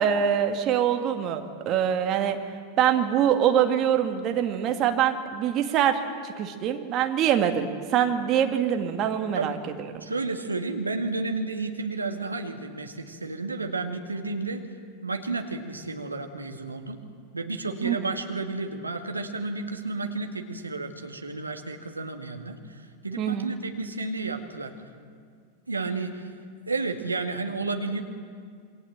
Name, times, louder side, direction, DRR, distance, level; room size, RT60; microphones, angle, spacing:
voice 1, 0.0-2.4 2.8-9.6 9.9-10.1 17.8-18.0 23.2-23.5, right 9 dB, 35° right, 5 dB, 2.2 m, -24 dB
voice 2, 10.0-14.6 15.0-17.0 17.3-24.7 25.7-26.3 26.7-28.0, right 3 dB, 80° right, 4 dB, 2.1 m, -32 dB
28.0 x 22.0 x 7.5 m, 2.1 s
figure-of-eight pair, 90°, 0 cm